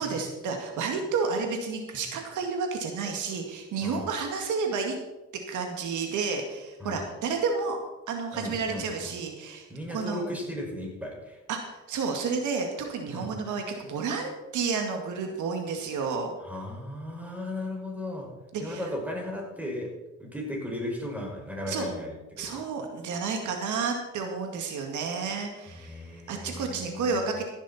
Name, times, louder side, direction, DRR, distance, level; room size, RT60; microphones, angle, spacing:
voice 1, 0.0-5.0 5.5-7.8 8.1-9.6 9.9-10.3 11.5-16.3 18.5-18.8 21.7-21.9 22.4-27.4, right 5 dB, 80° right, 3 dB, 2.2 m, -31 dB
voice 2, 8.3-9.1 9.7-11.4 13.1-13.3 16.4-18.3 18.6-19.9 20.2-22.7 25.7-27.2, left 1 dB, 5° right, -1 dB, 5.6 m, -36 dB
15.0 x 11.0 x 4.3 m, 1.1 s
cardioid pair, 90°, 30 cm